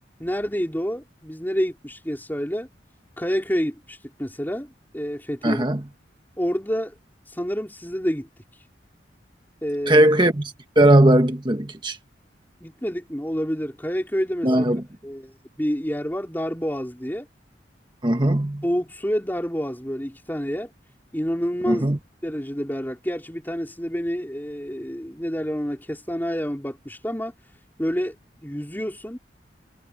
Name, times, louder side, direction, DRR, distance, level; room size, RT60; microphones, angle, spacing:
voice 1, 0.2-2.7 3.2-5.6 6.4-6.9 7.3-8.3 9.6-10.1 12.6-15.3 15.6-17.3 18.6-20.7 21.1-21.9 22.2-27.3 27.8-28.2 28.4-29.2, equal, 10° left, 4.2 m, -28 dB
voice 2, 5.4-5.8 9.9-12.0 14.4-14.8 18.0-18.6 21.7-22.0, right 1 dB, 25° right, 1.5 m, -18 dB
head